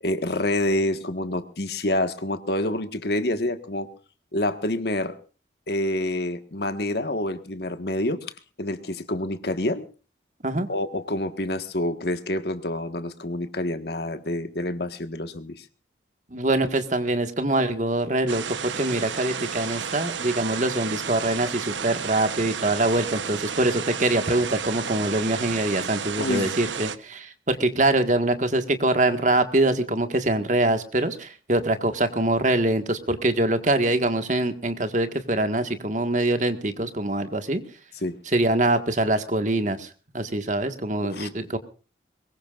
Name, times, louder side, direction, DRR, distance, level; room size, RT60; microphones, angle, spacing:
voice 1, 0.0-3.9 4.3-5.1 5.7-8.3 8.6-9.8 10.7-15.6 26.2-26.5 38.0-38.2 41.0-41.3, left 1 dB, 60° left, 9 dB, 1.6 m, -27 dB
voice 2, 16.3-37.6 38.3-41.6, right 2 dB, 40° right, 8 dB, 1.7 m, -24 dB
sound 1, 18.3-27.0, right 7 dB, 85° right, 1.0 m, -32 dB
23.0 x 21.0 x 2.5 m, 0.37 s
head